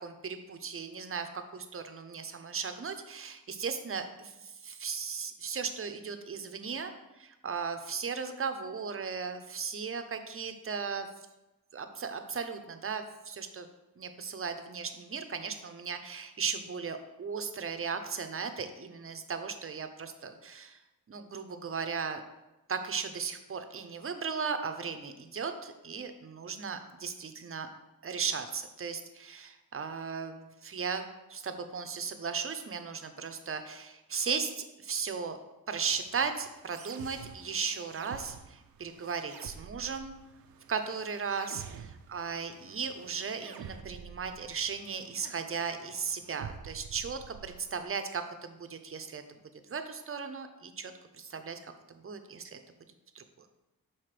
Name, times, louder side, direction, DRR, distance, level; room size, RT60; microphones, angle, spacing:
voice 1, 0.0-11.1 11.7-13.7 14.0-20.8 21.1-22.2 22.7-27.7 28.0-35.4 35.7-40.2 40.7-49.2 49.7-52.6 53.1-53.2, right 5 dB, 40° right, 8 dB, 0.7 m, -36 dB
sound 1, 35.8-47.8, right 7 dB, 75° right, 0.6 m, -49 dB
5.9 x 4.1 x 5.0 m, 1.0 s
cardioid pair, 85°, 36 cm